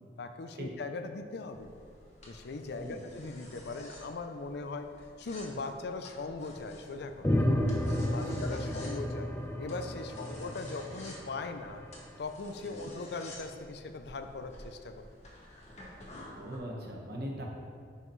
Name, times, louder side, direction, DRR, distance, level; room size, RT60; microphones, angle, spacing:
voice 1, 0.2-1.7 2.3-4.9 5.2-7.3 8.0-9.3 9.6-11.8 12.2-15.1, left 3 dB, 65° left, 7 dB, 0.5 m, -40 dB
sound 1, 1.5-16.6, left 1 dB, 40° left, 1.6 m, -52 dB
sound 2, 7.2-11.9, left 1 dB, 15° left, 0.6 m, -32 dB
voice 2, 12.6-12.9 16.4-17.4, equal, 60° right, -1 dB, 1.3 m, -41 dB
10.5 x 5.6 x 3.2 m, 2.2 s
head